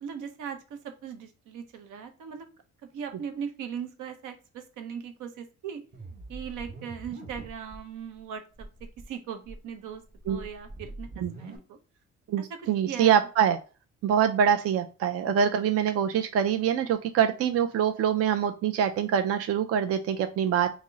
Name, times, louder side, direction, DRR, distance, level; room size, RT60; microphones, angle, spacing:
voice 1, 0.0-2.5 2.9-5.8 6.3-10.0 10.3-11.1 11.4-11.8 12.9-13.3, right 7 dB, 80° right, 7 dB, 0.7 m, -39 dB
sound 1, 5.9-7.8 8.1-8.2 8.5-9.0 9.4-11.6, right 2 dB, 30° right, 1.0 m, -43 dB
voice 2, 12.3-13.6 14.0-20.7, right 8 dB, 50° right, 8 dB, 0.4 m, -24 dB
3.6 x 2.1 x 3.7 m, 0.35 s
cardioid pair, 90°, 30 cm